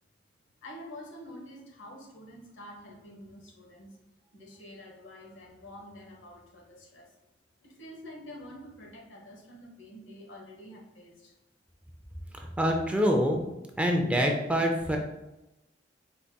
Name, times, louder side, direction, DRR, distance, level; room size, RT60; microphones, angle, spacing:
voice 1, 0.6-3.9 4.3-7.1 7.6-11.3, left 1 dB, 80° left, 0 dB, 1.1 m, -47 dB
voice 2, 12.3-13.4 13.8-15.0, equal, 5° right, 1 dB, 0.4 m, -25 dB
4.6 x 3.9 x 2.2 m, 0.97 s
head